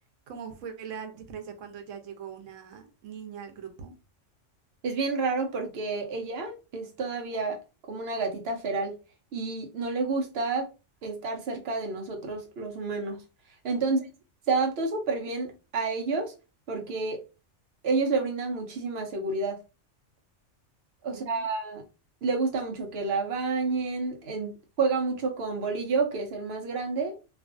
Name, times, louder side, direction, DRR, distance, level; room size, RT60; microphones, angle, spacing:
voice 1, 0.3-3.9 13.8-14.0 21.1-21.4, right 7 dB, 85° right, 1.0 m, -41 dB
voice 2, 4.8-7.6 7.9-9.0 9.3-10.7 11.0-13.2 13.6-14.0 14.5-16.3 16.7-17.2 17.8-19.6 21.0-21.8 22.2-27.1, right 4 dB, 60° right, 0.8 m, -29 dB
2.5 x 2.3 x 2.4 m
omnidirectional pair, 1.3 m